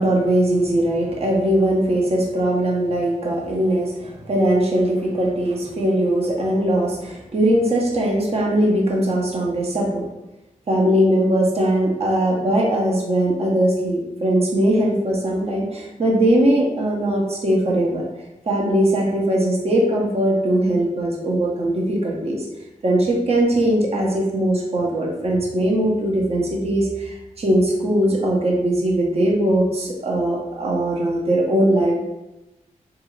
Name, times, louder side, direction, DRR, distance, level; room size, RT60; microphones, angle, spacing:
voice 1, 0.0-10.0 10.7-18.0 18.5-22.5 22.8-31.9, right 1 dB, 50° right, -1 dB, 0.7 m, -20 dB
2.7 x 2.4 x 3.1 m, 0.96 s
wide cardioid pair, 85°, 13 cm